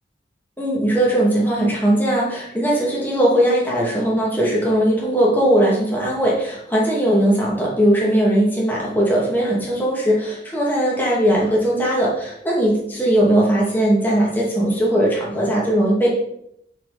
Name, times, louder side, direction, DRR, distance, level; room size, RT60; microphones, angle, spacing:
voice 1, 0.6-16.1, right 1 dB, 10° left, -5 dB, 2.6 m, -19 dB
12.5 x 4.9 x 5.2 m, 0.75 s
head